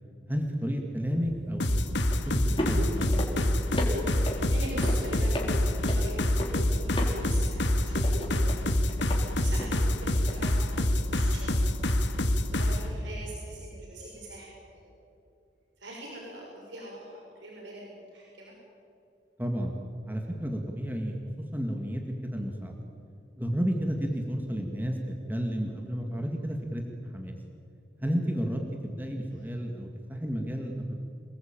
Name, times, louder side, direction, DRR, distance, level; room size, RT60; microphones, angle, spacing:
voice 1, 0.3-3.3 19.4-19.7 20.1-21.2 21.5-22.8 23.4-25.0 25.3-27.4 28.0-30.9, equal, 10° right, 1 dB, 2.0 m, -32 dB
sound 1, 1.1-12.0, left 1 dB, 30° left, 3.8 m, -36 dB
sound 2, 1.6-12.8, left 1 dB, 80° left, 2.0 m, -26 dB
voice 2, 4.5-8.5 9.4-11.6 12.5-14.8 15.8-18.5 29.3-29.4, right 1 dB, 85° right, -3 dB, 6.4 m, -44 dB
27.5 x 19.5 x 9.0 m, 2.6 s
head